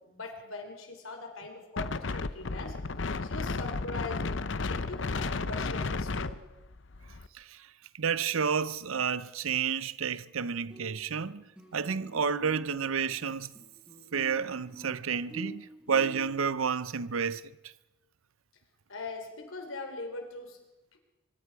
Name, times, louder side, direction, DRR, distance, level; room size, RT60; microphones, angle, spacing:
voice 1, 0.0-2.8 3.2-4.3 4.7-6.4 18.9-20.6, left 3 dB, 85° left, 3.6 m, -41 dB
Wind, 1.8-7.3, left 3 dB, 65° left, 0.7 m, -33 dB
voice 2, 8.0-11.4 11.7-13.5 14.1-17.4, right 6 dB, 90° right, 0.7 m, -30 dB
sound 1, 10.3-10.4 10.7-11.3 11.6-16.3, right 2 dB, 5° right, 5.7 m, -47 dB
24.5 x 24.0 x 4.8 m
head